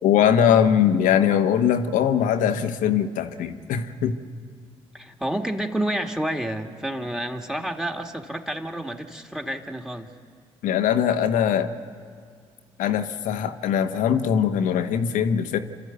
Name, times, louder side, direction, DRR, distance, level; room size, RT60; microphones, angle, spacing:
voice 1, 0.0-4.2 10.6-11.7 12.8-15.6, left 8 dB, 70° left, 8 dB, 1.2 m, -21 dB
voice 2, 4.9-10.1, right 1 dB, 5° right, 5 dB, 2.0 m, -29 dB
28.0 x 12.5 x 8.2 m, 2.1 s
hypercardioid pair, 50°, 14 cm